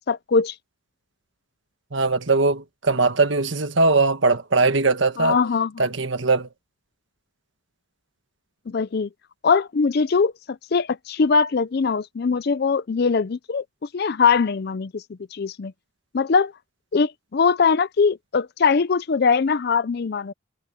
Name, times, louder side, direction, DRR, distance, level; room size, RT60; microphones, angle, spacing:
voice 1, 0.1-0.5 5.2-5.7 8.7-9.1 9.4-13.6 13.9-15.0 15.3-15.7 16.1-16.5 16.9-20.3, left 5 dB, 50° left, 0.4 m, -21 dB
voice 2, 1.9-5.4 5.8-6.5, right 3 dB, 60° right, 1.5 m, -20 dB
head